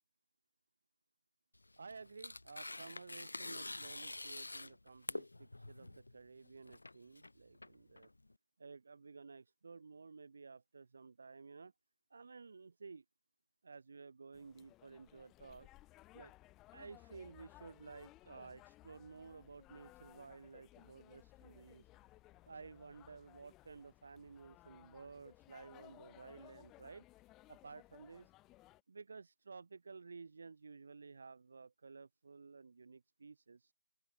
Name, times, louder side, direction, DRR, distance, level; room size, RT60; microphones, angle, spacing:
Tearing, 1.5-8.3, left 2 dB, 70° left, 3.0 m, -47 dB
voice 1, 1.8-8.1 8.6-11.7 12.1-13.0 13.6-15.7 16.1-16.3 16.7-21.8 22.5-27.0 27.5-28.3 28.9-33.7, right 4 dB, 30° right, 1.6 m, -54 dB
sound 1, 14.3-28.8, left 17 dB, 5° left, 1.9 m, -61 dB
open air
figure-of-eight pair, 180°, 0 cm